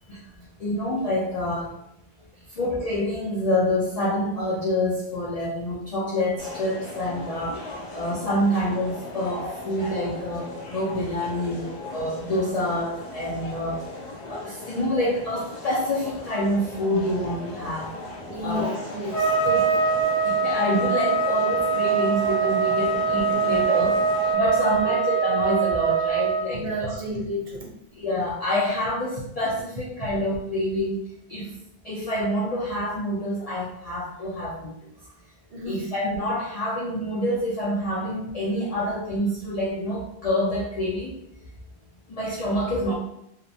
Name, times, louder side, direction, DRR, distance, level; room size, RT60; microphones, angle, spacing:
voice 1, 0.6-1.7 2.5-7.6 7.9-13.8 14.3-17.9 18.4-18.6 19.4-19.7 20.2-24.0 24.3-27.0 28.0-31.0 31.3-31.5 31.8-34.8 35.7-41.2 42.1-42.9, left 1 dB, 55° left, -6 dB, 0.4 m, -27 dB
sound 1, 6.4-24.3, left 2 dB, 75° left, 0.9 m, -38 dB
voice 2, 18.3-19.3 24.7-24.9 26.5-27.7 35.5-35.9, equal, 65° right, -2 dB, 0.8 m, -32 dB
Trumpet, 19.1-26.4, right 5 dB, 10° left, 0.9 m, -23 dB
2.7 x 2.0 x 2.6 m, 0.78 s
omnidirectional pair, 1.1 m